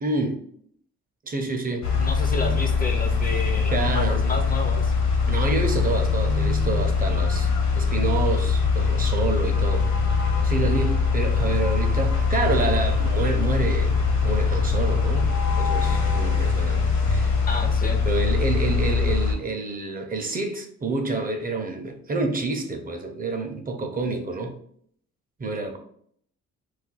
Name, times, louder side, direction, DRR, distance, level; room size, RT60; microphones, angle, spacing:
voice 1, 0.0-0.4 1.2-1.9 3.7-4.2 5.3-9.8 10.4-13.9 14.2-16.8 17.1-17.4 18.0-24.6 25.4-25.8, right 3 dB, 30° right, 5 dB, 0.5 m, -28 dB
sound 1, 1.8-19.3, left 5 dB, 70° left, 0.9 m, -22 dB
voice 2, 2.0-4.9 17.5-18.0, left 3 dB, 30° left, 5 dB, 0.4 m, -31 dB
2.4 x 2.1 x 3.8 m, 0.64 s
cardioid pair, 90°, 30 cm